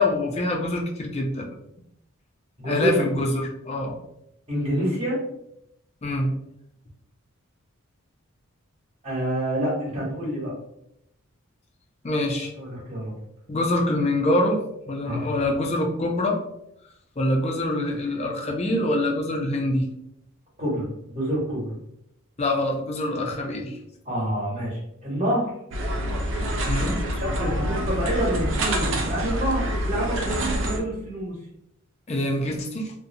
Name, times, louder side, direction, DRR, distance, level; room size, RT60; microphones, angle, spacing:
voice 1, 0.0-1.5 2.6-4.0 6.0-6.3 12.0-12.5 13.5-16.4 17.2-19.9 22.4-23.8 26.7-27.0 32.1-32.9, left 1 dB, 30° left, 1 dB, 0.4 m, -25 dB
voice 2, 2.6-3.0 4.5-5.2 9.0-10.5 12.6-13.2 15.1-15.3 20.6-21.8 24.1-25.5 27.1-31.3, right 1 dB, 30° right, -6 dB, 1.0 m, -27 dB
sound 1, 25.7-30.8, equal, 60° right, 0.4 m, -26 dB
2.6 x 2.1 x 2.6 m, 0.79 s
head